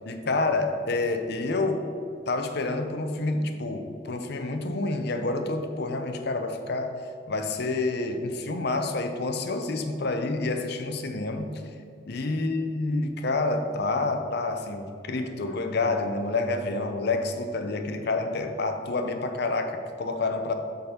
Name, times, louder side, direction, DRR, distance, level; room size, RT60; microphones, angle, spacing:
voice 1, 0.1-1.8 2.3-7.0 7.3-11.6 12.1-20.5, left 2 dB, 60° left, 6 dB, 0.7 m, -28 dB
7.0 x 4.0 x 6.5 m, 2.3 s
head